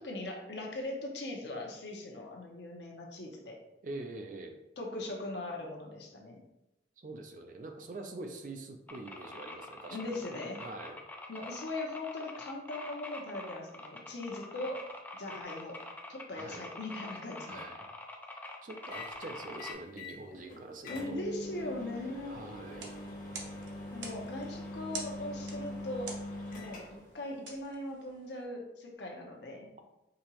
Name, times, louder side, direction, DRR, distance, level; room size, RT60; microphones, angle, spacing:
voice 1, 0.0-3.6 4.8-6.4 9.9-10.6 11.3-14.9 15.2-15.8 16.1-17.6 20.4-22.4 23.9-26.2 26.5-29.7, left 2 dB, 65° left, 1 dB, 0.9 m, -40 dB
voice 2, 3.8-4.6 7.0-10.2 10.6-11.0 16.3-16.6 17.5-17.9 18.6-21.2 22.2-22.9, right 2 dB, 45° right, 5 dB, 0.5 m, -44 dB
sound 1, 8.9-19.7, left 2 dB, 10° left, 0.4 m, -45 dB
sound 2, 18.9-19.1 19.6-20.2 20.5-20.6 20.8-27.1, left 1 dB, 50° left, 1.1 m, -43 dB
sound 3, 22.6-28.4, right 4 dB, 85° right, 0.8 m, -48 dB
5.1 x 2.9 x 2.9 m, 0.89 s
head